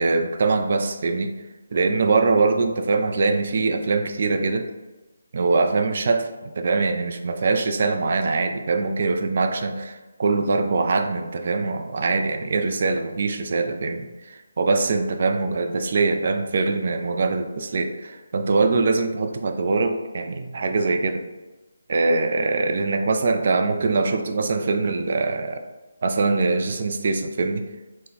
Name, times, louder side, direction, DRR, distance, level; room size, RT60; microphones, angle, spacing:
voice 1, 0.0-1.3 1.7-4.7 5.3-21.2 21.9-25.6 26.0-27.6, right 3 dB, 50° right, 6 dB, 0.3 m, -23 dB
3.6 x 2.1 x 2.9 m, 1.1 s
figure-of-eight pair, 150°, 0 cm